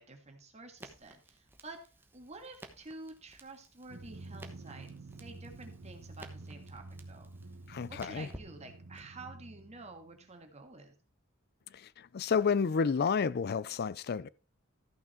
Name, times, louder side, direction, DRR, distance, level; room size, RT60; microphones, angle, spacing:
voice 1, 0.0-1.8 2.1-4.9 5.2-7.3 7.9-10.9, right 3 dB, 35° right, 1.7 m, -50 dB
Crackle, 0.8-9.1, right 1 dB, 10° right, 1.1 m, -55 dB
Drum, 3.9-10.4, right 2 dB, 80° right, 1.0 m, -49 dB
voice 2, 7.7-8.3 11.7-14.3, left 5 dB, 50° left, 0.4 m, -30 dB
13.5 x 6.0 x 4.4 m
head